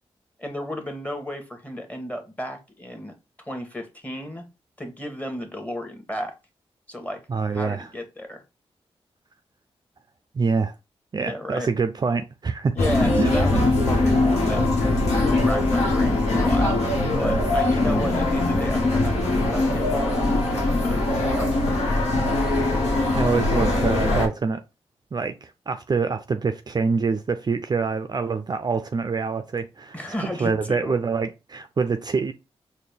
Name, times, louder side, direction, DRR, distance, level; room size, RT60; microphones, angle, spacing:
voice 1, 0.4-3.1 3.5-4.4 4.8-6.3 6.9-7.2 7.5-8.4 11.2-11.7 12.7-19.1 19.5-22.1 29.9-30.9, equal, 15° left, 1.1 m, -33 dB
voice 2, 7.3-7.9 10.3-10.7 11.1-12.7 13.2-13.4 23.1-24.6 25.1-30.0 30.4-32.3, right 5 dB, 40° right, 0.3 m, -25 dB
sound 1, 12.8-24.3, left 2 dB, 85° left, 0.9 m, -21 dB
4.1 x 2.1 x 3.3 m
cardioid pair, 50°, 11 cm